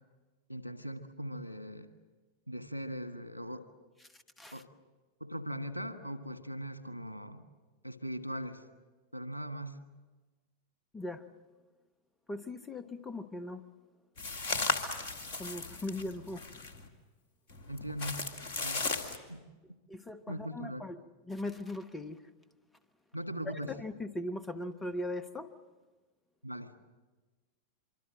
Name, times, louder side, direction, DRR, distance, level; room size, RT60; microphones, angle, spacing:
voice 1, 0.5-1.9 2.5-3.7 4.5-4.7 5.2-7.4 7.8-8.6 9.1-9.8 17.7-18.2 18.5-18.8 19.3-19.4 19.7-19.8 20.3-20.8 23.1-23.7 26.4-26.7, equal, 85° left, 1.4 m, -40 dB
voice 2, 10.9-11.2 12.3-13.6 15.4-16.4 19.9-21.0 21.3-22.2 23.4-25.5, left 1 dB, 15° left, 1.0 m, -39 dB
sound 1, 14.2-16.9 17.5-19.2, left 3 dB, 50° left, 2.2 m, -36 dB
25.0 x 24.5 x 7.6 m
figure-of-eight pair, 90°, 0 cm